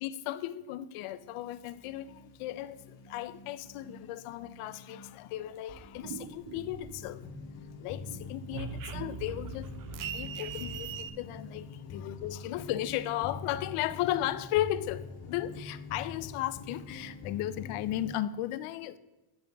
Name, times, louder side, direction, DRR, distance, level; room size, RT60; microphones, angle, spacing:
voice 1, 0.0-7.2 7.8-9.7 10.1-11.6 11.9-19.0, left 13 dB, 80° left, 0.7 m, -35 dB
sound 1, 1.0-18.2, left 4 dB, 60° left, 1.7 m, -45 dB
sound 2, 5.7-7.4 7.7-11.1, right 8 dB, 40° right, 0.6 m, -41 dB
9.3 x 7.0 x 3.4 m
cardioid pair, 125°, 50 cm